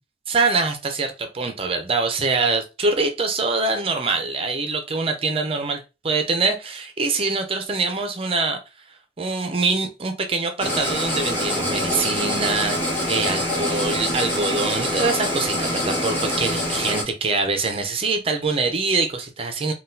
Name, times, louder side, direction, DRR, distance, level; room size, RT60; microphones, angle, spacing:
voice 1, 0.3-8.6 9.2-19.7, right 3 dB, 30° right, 6 dB, 0.5 m, -24 dB
sound 1, 10.6-17.0, left 1 dB, 10° left, 1.2 m, -25 dB
3.8 x 2.3 x 2.6 m, 0.27 s
head